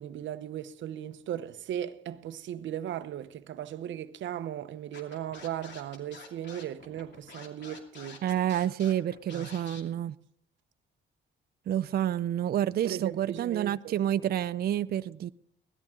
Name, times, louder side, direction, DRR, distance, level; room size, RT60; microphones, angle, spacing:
voice 1, 0.0-8.2 9.3-9.5 12.8-14.0, right 11 dB, 70° right, 0.8 m, -37 dB
Scratching (performance technique), 4.9-9.8, left 4 dB, 65° left, 2.7 m, -48 dB
voice 2, 8.2-10.1 11.7-15.3, right 11 dB, 50° right, 0.5 m, -29 dB
17.0 x 13.5 x 3.8 m
cardioid pair, 90°, 20 cm